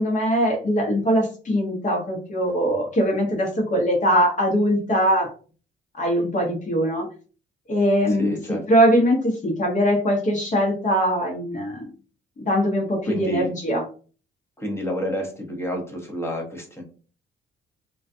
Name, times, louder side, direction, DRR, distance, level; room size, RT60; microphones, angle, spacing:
voice 1, 0.0-5.3 6.0-7.0 7.7-11.8 12.4-13.8, equal, 40° left, 0 dB, 0.9 m, -21 dB
voice 2, 8.0-8.6 13.0-13.5 14.6-16.8, equal, 10° left, 2 dB, 0.8 m, -29 dB
2.4 x 2.2 x 2.5 m, 0.39 s
cardioid pair, 90°, 20 cm